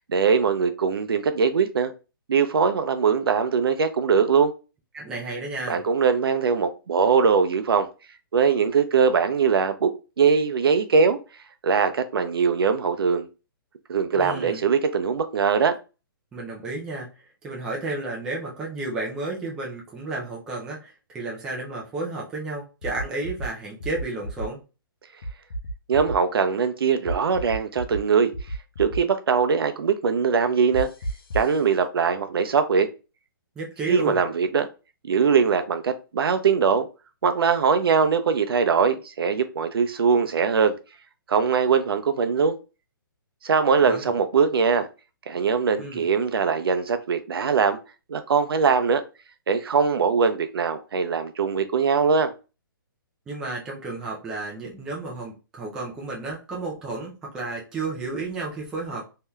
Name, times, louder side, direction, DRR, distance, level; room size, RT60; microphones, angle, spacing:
voice 1, 0.1-1.9 2.3-4.5 5.7-7.9 8.3-9.9 10.2-11.2 11.6-13.3 13.9-15.8 25.9-28.3 28.8-30.9 31.3-32.9 33.9-34.7 35.0-36.9 37.2-40.7 41.3-42.6 43.4-44.9 45.3-47.8 48.1-49.0 49.5-52.3, right 6 dB, 85° right, 0.6 m, -21 dB
voice 2, 4.9-5.8 14.1-14.6 16.3-17.1 17.4-24.6 33.6-34.2 43.8-44.1 45.8-46.1 53.3-59.0, right 3 dB, 5° right, 0.4 m, -32 dB
sound 1, 22.8-23.5 23.8-24.5 25.2-26.2 27.1-28.0 28.3-29.0 30.7-31.5, right 2 dB, 80° left, 0.7 m, -31 dB
3.3 x 2.8 x 2.2 m
hypercardioid pair, 170°, 12 cm